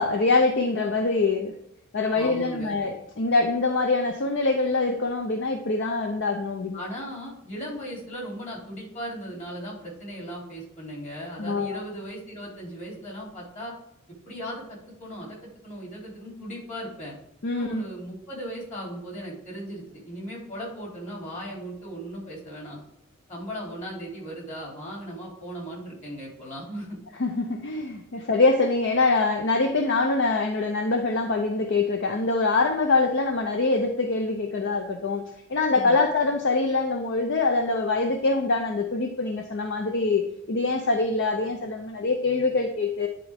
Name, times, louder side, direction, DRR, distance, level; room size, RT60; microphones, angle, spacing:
voice 1, 0.0-1.6 1.9-6.9 11.4-11.8 17.4-17.8 27.2-35.2 35.5-43.1, left 3 dB, 55° left, 5 dB, 0.6 m, -24 dB
voice 2, 2.1-2.7 6.7-13.7 14.1-17.1 17.5-22.8 23.3-27.0 35.7-36.0, equal, 35° left, -3 dB, 3.1 m, -37 dB
10.0 x 4.5 x 3.5 m, 0.79 s
head